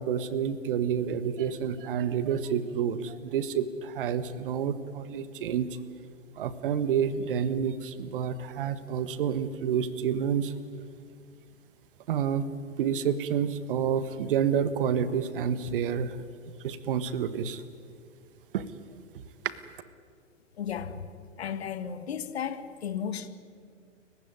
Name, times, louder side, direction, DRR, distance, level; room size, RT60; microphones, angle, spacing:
voice 1, 0.0-5.7 6.4-10.5 12.1-12.4 12.8-16.2 16.6-17.6 18.5-18.6, right 8 dB, 45° right, 14 dB, 1.4 m, -29 dB
voice 2, 20.6-20.9 21.4-23.3, left 8 dB, 55° left, 12 dB, 1.7 m, -34 dB
30.0 x 15.5 x 9.7 m, 2.2 s
figure-of-eight pair, 110°, 38 cm